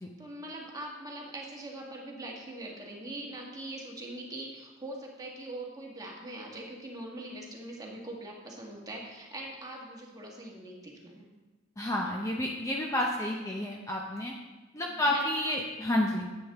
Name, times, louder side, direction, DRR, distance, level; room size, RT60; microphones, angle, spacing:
voice 1, 0.2-11.3 14.8-15.3, right 1 dB, 20° right, -2 dB, 1.5 m, -42 dB
voice 2, 11.8-14.3 14.7-16.3, left 1 dB, 15° left, -1 dB, 0.6 m, -30 dB
9.8 x 8.2 x 3.5 m, 1.2 s
head